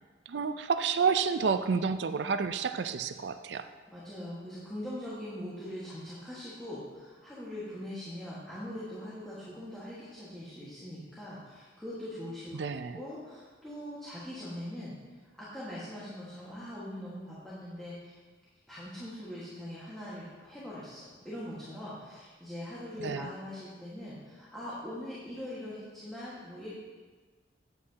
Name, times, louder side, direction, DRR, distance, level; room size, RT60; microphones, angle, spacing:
voice 1, 0.3-3.7 12.5-13.0 23.0-23.3, right 5 dB, 75° right, 10 dB, 0.4 m, -30 dB
voice 2, 3.9-12.5 12.9-14.9 15.4-18.2 18.7-26.7, left 1 dB, ahead, -10 dB, 1.6 m, -42 dB
9.4 x 8.6 x 2.9 m, 1.4 s
head